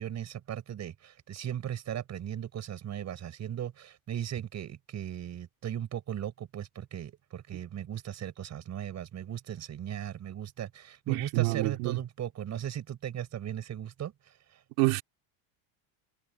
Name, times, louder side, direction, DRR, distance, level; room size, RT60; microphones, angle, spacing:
voice 1, 0.0-14.6, right 10 dB, 35° right, 7.1 m, -37 dB
voice 2, 11.1-12.0 14.8-15.0, right 24 dB, 70° right, 3.0 m, -27 dB
cardioid pair, 145°, 48 cm